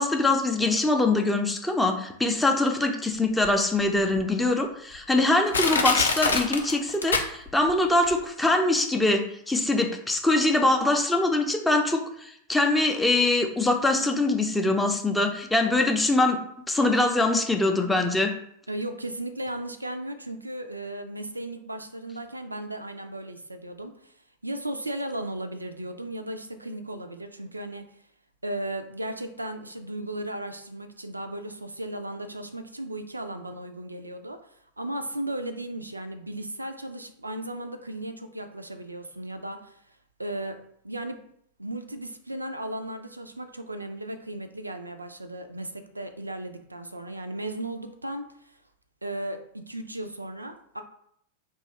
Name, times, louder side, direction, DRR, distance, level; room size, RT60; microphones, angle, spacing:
voice 1, 0.0-16.4 16.7-18.3, left 2 dB, 5° left, 3 dB, 0.4 m, -23 dB
Crushing, 3.4-3.5 4.2-4.3 4.9-5.0 5.5-7.7 8.0-8.1, left 4 dB, 70° left, 0.4 m, -25 dB
voice 2, 18.7-24.1 24.4-27.9 28.4-34.4 34.8-39.8 40.2-40.6 40.8-41.3 41.6-48.3 49.0-50.8, right 1 dB, 85° right, 8 dB, 0.3 m, -35 dB
2.7 x 2.3 x 4.1 m, 0.70 s
figure-of-eight pair, 90°, 0 cm